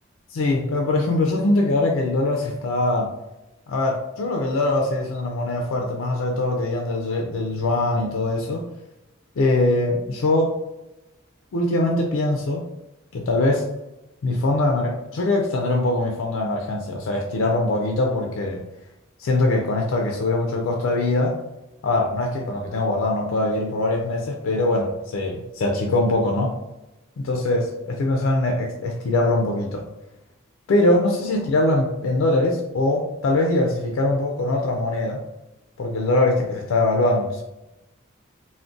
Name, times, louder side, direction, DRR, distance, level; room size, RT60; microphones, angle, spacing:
voice 1, 0.3-3.1 3.7-8.6 9.4-10.5 11.5-12.6 13.1-13.7 14.2-18.6 19.2-21.4 21.8-26.5 27.2-29.9 30.7-35.2 35.8-37.4, left 2 dB, 70° left, 1 dB, 0.4 m, -22 dB
2.4 x 2.1 x 3.7 m, 0.96 s
head